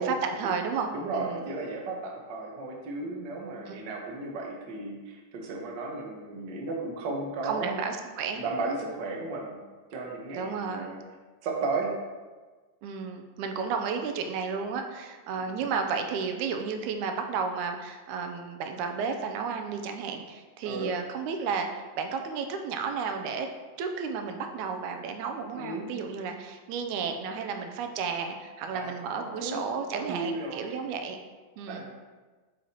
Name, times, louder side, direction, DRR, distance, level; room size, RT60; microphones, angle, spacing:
voice 1, 0.0-1.4 3.7-3.8 7.4-8.4 10.3-10.9 12.8-23.5 23.8-31.2 31.6-31.9, right 5 dB, 90° right, 5 dB, 2.1 m, -32 dB
voice 2, 0.9-7.7 8.3-9.6 9.9-11.0 11.4-11.9 15.4-15.6 20.6-20.9 25.5-25.9 28.7-29.6 29.9-30.6 31.7-31.9, right 3 dB, 70° right, 0 dB, 1.0 m, -34 dB
8.3 x 4.7 x 2.8 m, 1.3 s
omnidirectional pair, 3.4 m